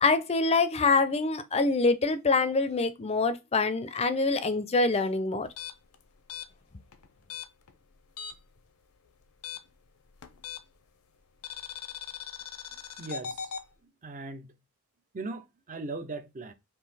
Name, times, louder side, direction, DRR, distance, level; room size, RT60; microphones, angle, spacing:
voice 1, 0.0-5.5, left 3 dB, 30° left, 0.5 m, -25 dB
sound 1, 5.5-8.6 8.8-10.9 11.4-13.7, left 7 dB, 85° left, 0.6 m, -40 dB
voice 2, 13.0-13.5 14.0-14.5 15.1-16.5, right 3 dB, 35° right, 0.6 m, -38 dB
3.8 x 2.8 x 4.1 m
head